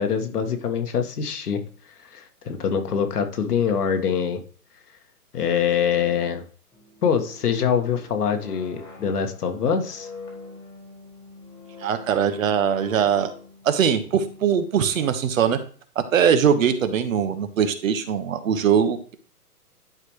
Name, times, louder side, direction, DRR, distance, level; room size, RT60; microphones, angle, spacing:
voice 1, 0.0-1.6 2.1-4.4 5.3-6.4 7.0-10.1, left 7 dB, 75° left, 6 dB, 1.7 m, -24 dB
sound 1, 6.7-15.5, left 3 dB, 10° left, 1.4 m, -45 dB
voice 2, 11.8-13.3 13.6-15.6 15.9-19.2, right 8 dB, 60° right, 9 dB, 1.4 m, -21 dB
11.0 x 5.0 x 3.1 m, 0.43 s
hypercardioid pair, 145°, 46 cm